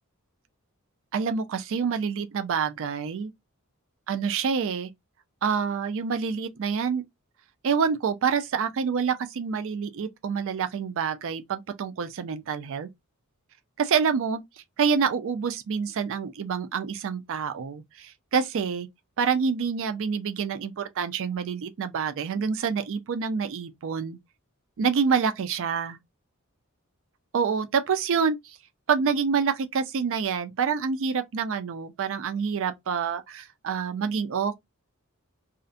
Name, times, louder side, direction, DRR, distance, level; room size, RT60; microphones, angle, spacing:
voice 1, 1.1-3.3 4.1-4.9 5.4-7.0 7.6-12.9 13.8-14.4 14.8-18.9 19.2-24.2 24.8-26.0 27.3-28.6 28.9-34.6, right 6 dB, 65° right, 0.4 m, -27 dB
2.5 x 2.1 x 2.4 m
head